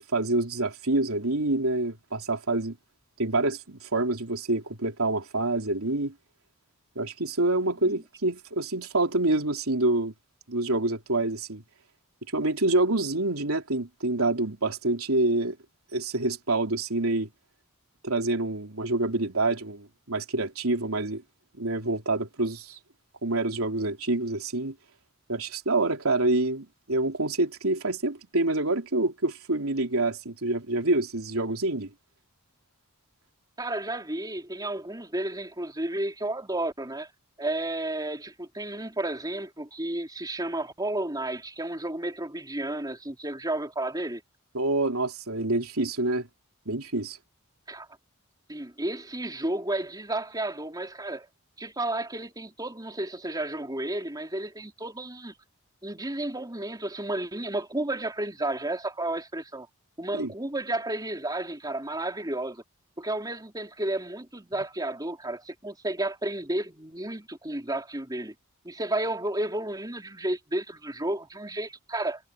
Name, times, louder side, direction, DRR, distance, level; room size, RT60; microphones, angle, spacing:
voice 1, 0.0-2.8 3.2-6.1 6.9-10.1 10.5-11.6 12.3-15.6 15.9-17.3 18.0-21.2 21.6-22.8 23.2-24.7 25.3-31.9 44.5-46.3 46.6-47.2 60.1-60.3, right 2 dB, 80° right, 3.3 m, -27 dB
voice 2, 33.6-37.1 37.4-44.2 47.7-47.9 48.5-51.3 51.6-55.3 55.8-59.7 60.0-62.6 63.0-68.3 68.6-72.3, right 1 dB, 20° right, 3.8 m, -32 dB
head